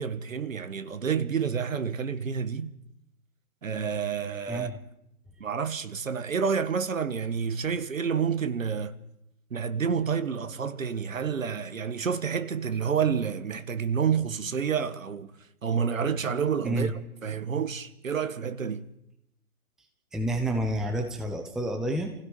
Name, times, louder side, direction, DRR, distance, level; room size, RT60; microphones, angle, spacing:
voice 1, 0.0-2.7 3.6-4.7 5.4-9.0 9.5-15.3 15.6-16.9 17.2-18.9, right 6 dB, 60° right, 1.7 m, -29 dB
voice 2, 20.1-22.1, right 1 dB, ahead, 0.9 m, -29 dB
29.5 x 16.5 x 5.5 m
figure-of-eight pair, 130°, 45 cm